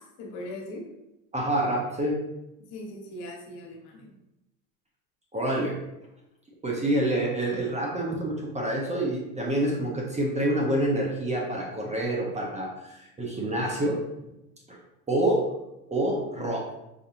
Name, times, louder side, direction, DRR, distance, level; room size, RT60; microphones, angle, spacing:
voice 1, 0.2-0.8 2.7-4.1, left 1 dB, 60° left, -1 dB, 1.3 m, -39 dB
voice 2, 1.3-2.2 5.3-5.8 6.6-14.0 14.7-14.8 15.1-15.4 15.9-16.7, right 1 dB, 15° right, -1 dB, 0.7 m, -27 dB
5.0 x 2.7 x 2.5 m, 0.93 s
supercardioid pair, 95°, 43 cm